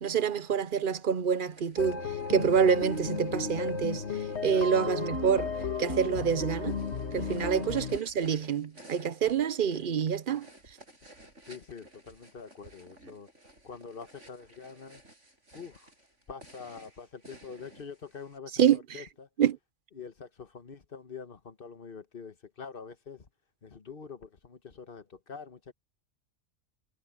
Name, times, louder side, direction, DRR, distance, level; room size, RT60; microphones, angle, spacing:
voice 1, 0.0-2.0 2.3-4.0 4.4-5.5 5.8-6.8 7.1-10.5 18.6-19.0 19.4-19.6, right 7 dB, 50° right, 0.8 m, -27 dB
sound 1, 1.4-18.4, right 1 dB, 85° right, 7.3 m, -56 dB
sound 2, 1.8-8.0, left 4 dB, 65° left, 1.8 m, -34 dB
voice 2, 4.5-4.8 7.3-7.7 9.2-9.3 11.4-13.3 13.6-15.0 15.5-15.9 16.3-19.3 19.9-23.3 23.6-25.7, left 5 dB, 50° left, 1.5 m, -45 dB
omnidirectional pair, 1.2 m